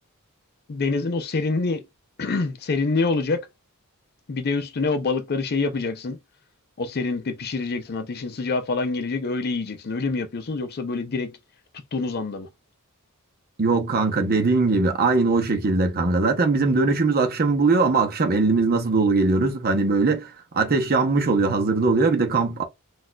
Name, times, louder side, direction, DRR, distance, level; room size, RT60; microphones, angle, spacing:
voice 1, 0.7-1.8 2.2-3.4 4.3-6.2 6.8-11.3 11.9-12.5, left 3 dB, 45° left, 0.5 m, -26 dB
voice 2, 13.6-22.6, right 3 dB, 45° right, 0.7 m, -21 dB
4.0 x 2.4 x 2.2 m
head